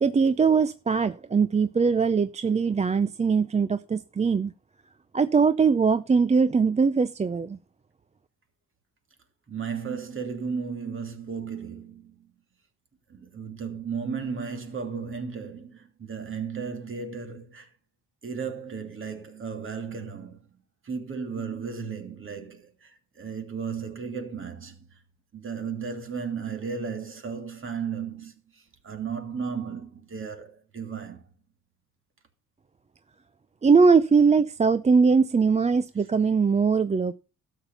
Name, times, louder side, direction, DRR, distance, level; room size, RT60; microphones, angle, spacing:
voice 1, 0.0-4.5 5.1-7.6 33.6-37.1, right 5 dB, 20° right, 0.5 m, -21 dB
voice 2, 9.5-12.3 13.1-17.7 18.2-20.4 20.8-25.0 25.3-31.3, right 6 dB, 45° right, 2.6 m, -35 dB
12.5 x 7.2 x 5.5 m
cardioid pair, 90°, 30 cm